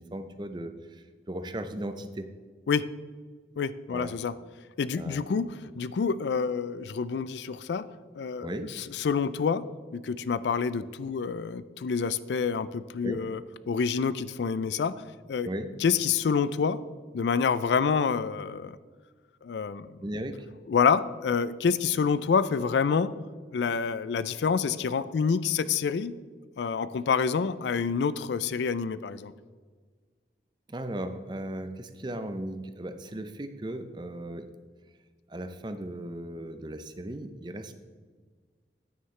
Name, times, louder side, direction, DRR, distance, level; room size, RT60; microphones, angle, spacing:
voice 1, 0.0-2.3 3.9-4.1 5.0-5.3 8.4-8.7 13.0-13.2 15.4-15.8 20.0-20.5 30.7-34.5 35.3-37.7, right 1 dB, 25° right, 9 dB, 0.5 m, -37 dB
voice 2, 3.6-4.3 4.8-7.9 8.2-8.5 8.8-9.7 9.9-13.4 13.7-14.9 15.3-15.5 15.8-16.8 17.1-18.8 19.4-19.9 20.7-23.1 23.5-26.2 26.6-29.3, left 6 dB, 80° left, 16 dB, 0.4 m, -27 dB
9.5 x 9.2 x 3.2 m, 1.5 s
head